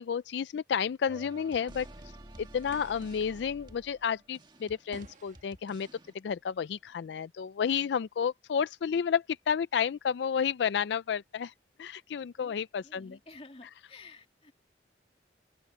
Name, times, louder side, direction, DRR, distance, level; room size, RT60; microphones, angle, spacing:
voice 1, 0.0-2.1 2.4-5.9 6.2-11.5 11.8-13.2, left 7 dB, 75° left, 0.3 m, -31 dB
sound 1, 1.1-6.1, right 1 dB, 25° right, 1.7 m, -51 dB
sound 2, 1.8-7.3, right 2 dB, 40° right, 1.6 m, -57 dB
voice 2, 12.8-14.5, left 3 dB, 35° left, 2.4 m, -51 dB
open air
head